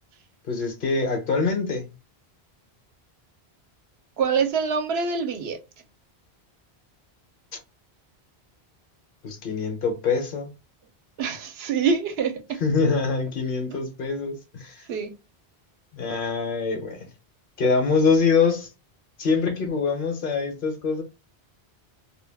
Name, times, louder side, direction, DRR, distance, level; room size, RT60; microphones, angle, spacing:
voice 1, 0.5-1.9 9.2-10.5 12.6-14.9 15.9-17.0 17.6-18.7 19.2-21.0, left 4 dB, 60° left, 0.8 m, -24 dB
voice 2, 4.2-5.6 11.2-12.6 13.7-13.8 14.9-15.1, right 6 dB, 75° right, 0.8 m, -25 dB
2.2 x 2.2 x 3.3 m
omnidirectional pair, 1.1 m